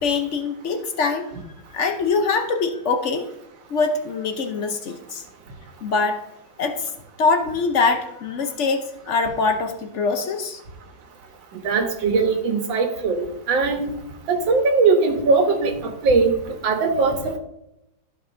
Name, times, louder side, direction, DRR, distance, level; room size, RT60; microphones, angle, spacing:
voice 1, 0.0-1.3 1.7-3.3 3.7-5.2 5.8-6.2 6.6-6.9 7.2-10.6, left 4 dB, 60° left, 6 dB, 0.7 m, -23 dB
voice 2, 11.6-13.9 14.3-16.3 16.6-17.4, right 4 dB, 85° right, 5 dB, 1.9 m, -20 dB
13.5 x 5.3 x 2.6 m, 0.87 s
omnidirectional pair, 2.0 m